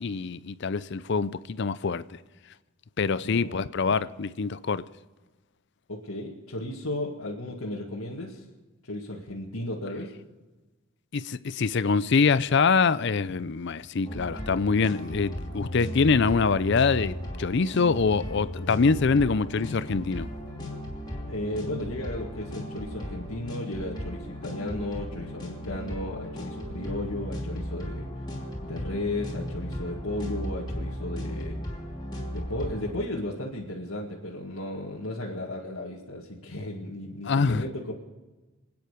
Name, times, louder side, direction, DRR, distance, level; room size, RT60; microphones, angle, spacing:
voice 1, 0.0-2.0 3.0-4.8 11.1-20.3 37.3-37.6, left 4 dB, 55° left, 0.5 m, -24 dB
voice 2, 3.2-3.6 5.9-8.4 8.8-10.1 21.3-28.1 28.6-31.6 32.3-37.9, left 1 dB, 85° left, 2.0 m, -34 dB
sound 1, 14.0-32.9, equal, 20° left, 2.9 m, -36 dB
26.5 x 9.6 x 5.1 m
head